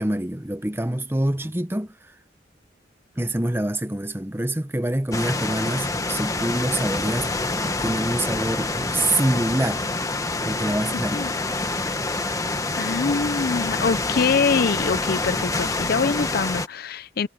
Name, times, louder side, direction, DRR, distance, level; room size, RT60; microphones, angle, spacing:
voice 1, 0.0-1.9 3.2-7.3 7.8-9.9 10.4-11.2, right 1 dB, 10° right, 1.0 m, -25 dB
sound 1, 5.1-16.7, left 2 dB, 20° left, 1.2 m, -26 dB
voice 2, 12.8-17.3, left 5 dB, 55° left, 0.5 m, -24 dB
head